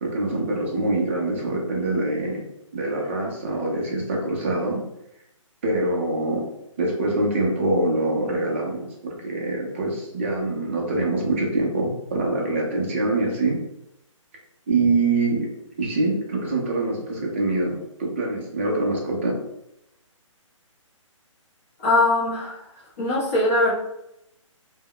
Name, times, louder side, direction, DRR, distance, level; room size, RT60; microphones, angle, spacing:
voice 1, 0.0-2.4 2.7-4.8 5.6-6.4 6.8-13.6 14.7-15.5 15.8-19.3, right 2 dB, 25° right, -1 dB, 0.5 m, -24 dB
voice 2, 21.8-22.7 23.0-23.7, left 2 dB, 25° left, -5 dB, 0.8 m, -21 dB
2.2 x 2.2 x 3.6 m, 0.83 s
hypercardioid pair, 165°, 17 cm